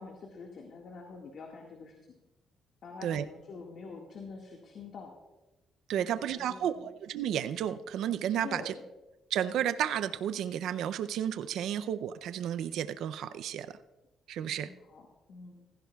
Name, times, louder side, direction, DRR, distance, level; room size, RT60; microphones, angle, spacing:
voice 1, 0.0-2.0 2.8-5.1 5.9-6.8 8.4-8.8 14.4-15.6, left 4 dB, 65° left, 1 dB, 1.7 m, -46 dB
voice 2, 5.9-8.7 9.3-13.8 14.3-14.7, right 10 dB, 80° right, 12 dB, 0.5 m, -32 dB
16.0 x 15.5 x 2.3 m, 1.0 s
cardioid pair, 90°, 0 cm